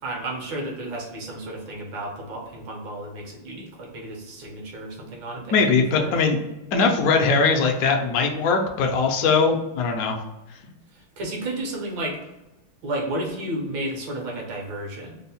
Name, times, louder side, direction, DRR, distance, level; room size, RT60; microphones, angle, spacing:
voice 1, 0.0-5.5 5.9-6.2 10.9-12.2 12.8-15.2, right 1 dB, 70° right, 0 dB, 1.6 m, -32 dB
voice 2, 5.5-6.4 6.7-10.2, left 4 dB, 75° left, 2 dB, 0.8 m, -20 dB
3.6 x 2.1 x 4.1 m, 0.96 s
omnidirectional pair, 2.3 m